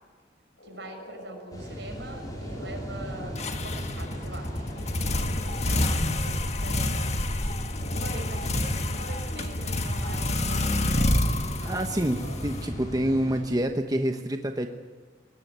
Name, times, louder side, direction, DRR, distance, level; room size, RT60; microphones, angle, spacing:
sound 1, 0.6-8.2, equal, 60° left, 6.5 m, -47 dB
voice 1, 0.6-7.1 7.9-12.4, right 2 dB, 70° right, 3 dB, 6.0 m, -44 dB
sound 2, 1.5-13.4, equal, 20° left, 5.0 m, -39 dB
sound 3, 3.3-13.1, left 1 dB, 35° left, 1.6 m, -28 dB
voice 2, 11.6-14.7, right 1 dB, 20° right, 5 dB, 1.0 m, -27 dB
21.5 x 17.5 x 9.4 m, 1.4 s
head